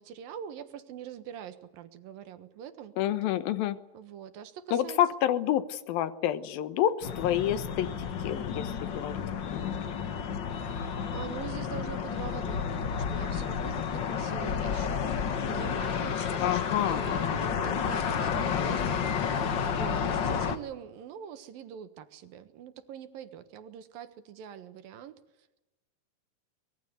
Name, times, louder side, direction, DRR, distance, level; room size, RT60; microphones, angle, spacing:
voice 1, 0.0-2.9 3.9-5.0 10.5-25.2, right 8 dB, 80° right, 10 dB, 3.2 m, -44 dB
voice 2, 3.0-3.8 4.7-9.2 9.5-9.7 16.4-17.4, left 11 dB, 90° left, 13 dB, 2.9 m, -29 dB
sound 1, 7.0-20.6, left 7 dB, 65° left, 1.1 m, -31 dB
24.5 x 21.5 x 8.2 m, 1.0 s
omnidirectional pair, 4.0 m